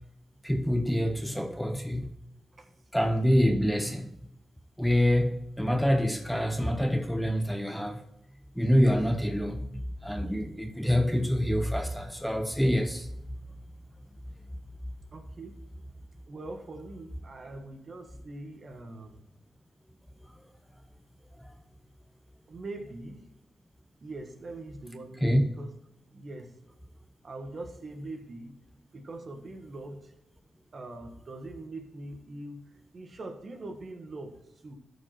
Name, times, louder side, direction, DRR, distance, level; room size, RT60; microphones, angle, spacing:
voice 1, 0.4-2.1 2.9-4.1 4.8-8.0 8.6-13.1 21.4-21.5 25.2-25.4, equal, ahead, 5 dB, 0.8 m, -26 dB
voice 2, 15.1-15.6 16.3-19.2 22.5-23.2 24.0-25.7 26.1-26.5 27.2-28.6 28.9-30.1 30.7-32.6 32.9-34.3 34.6-34.7, right 2 dB, 45° right, 5 dB, 1.5 m, -42 dB
13.0 x 5.3 x 4.4 m, 0.84 s
cardioid pair, 85°, 0 cm